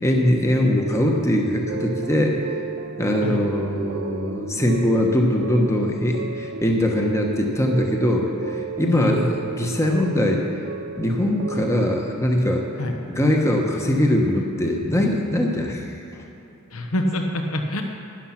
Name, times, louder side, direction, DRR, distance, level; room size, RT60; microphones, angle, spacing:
voice 1, 0.0-2.4 3.0-10.4 11.0-12.7 13.1-16.2, left 1 dB, 15° left, 1 dB, 1.0 m, -21 dB
sound 1, 1.7-12.2, right 6 dB, 50° right, 0.3 m, -34 dB
voice 2, 8.9-9.4 12.8-13.0 16.7-17.8, left 1 dB, 70° left, 3 dB, 1.0 m, -26 dB
12.5 x 10.0 x 5.8 m, 2.9 s
head